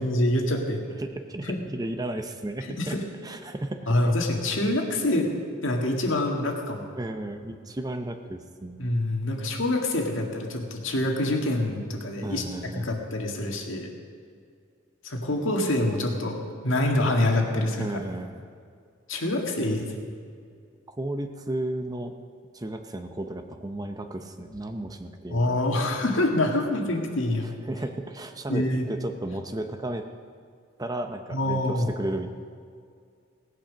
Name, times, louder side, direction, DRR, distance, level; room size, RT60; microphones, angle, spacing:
voice 1, 0.0-0.8 1.4-1.6 2.6-3.0 3.9-5.3 5.6-6.9 8.8-12.4 12.8-13.9 15.0-16.4 16.6-17.9 19.1-20.1 25.3-27.5 28.5-28.8 31.3-31.9, left 1 dB, 75° left, 1 dB, 1.9 m, -26 dB
voice 2, 0.9-3.0 3.2-3.9 7.0-9.0 12.2-13.0 17.8-18.4 19.6-20.1 20.9-22.2 22.5-25.6 27.7-30.1 30.8-32.3, right 1 dB, 20° right, 7 dB, 0.7 m, -34 dB
17.5 x 8.9 x 6.3 m, 2.2 s
head